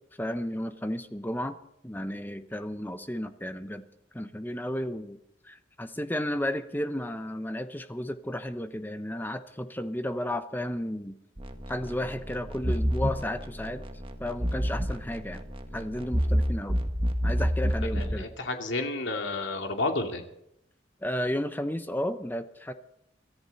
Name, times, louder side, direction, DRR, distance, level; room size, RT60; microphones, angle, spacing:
voice 1, 0.2-1.6 1.8-3.8 4.1-5.2 5.4-11.2 11.7-13.8 14.2-15.4 15.7-16.8 17.2-18.3 21.0-22.7, left 1 dB, 10° left, 9 dB, 1.0 m, -33 dB
sound 1, 11.4-18.2, equal, 30° right, 1.7 m, -29 dB
voice 2, 17.9-20.2, left 2 dB, 75° left, 3 dB, 2.6 m, -31 dB
24.0 x 14.0 x 4.2 m, 0.78 s
head